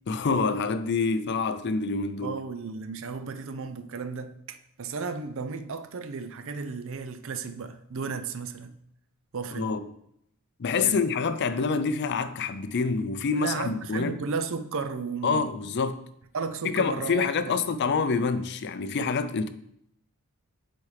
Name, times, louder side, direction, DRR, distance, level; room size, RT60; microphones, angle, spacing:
voice 1, 0.1-2.4 9.6-9.9 10.6-14.2 15.2-16.0 16.6-19.5, left 4 dB, 50° left, 0.4 m, -27 dB
voice 2, 2.2-8.8 9.3-9.7 10.8-11.0 13.3-15.5 16.3-17.6, right 5 dB, 60° right, 0.5 m, -34 dB
8.3 x 4.3 x 3.3 m
head